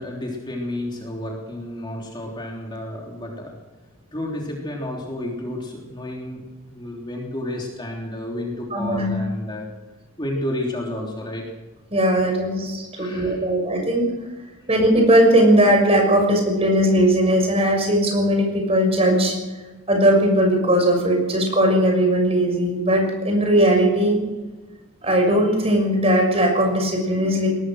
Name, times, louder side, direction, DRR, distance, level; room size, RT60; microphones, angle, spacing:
voice 1, 0.0-3.5 4.1-9.7 10.2-11.4 12.9-13.4 16.6-16.7, left 1 dB, 20° left, -1 dB, 3.4 m, -31 dB
voice 2, 8.7-9.1 11.9-14.1 14.7-19.3 19.9-24.2 25.0-27.5, right 1 dB, 30° right, 2 dB, 6.4 m, -18 dB
22.5 x 19.0 x 6.4 m, 1.2 s
head